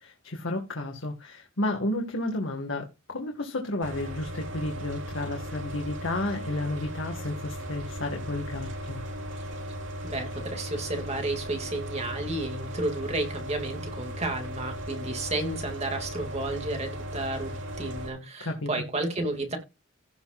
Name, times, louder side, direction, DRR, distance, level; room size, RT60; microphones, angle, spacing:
voice 1, 0.0-9.0 18.4-18.8, left 2 dB, 80° left, 1.7 m, -32 dB
sound 1, 3.8-18.1, equal, 70° right, 2.7 m, -37 dB
voice 2, 10.0-19.6, right 2 dB, 35° right, 2.3 m, -32 dB
17.0 x 6.1 x 2.4 m
head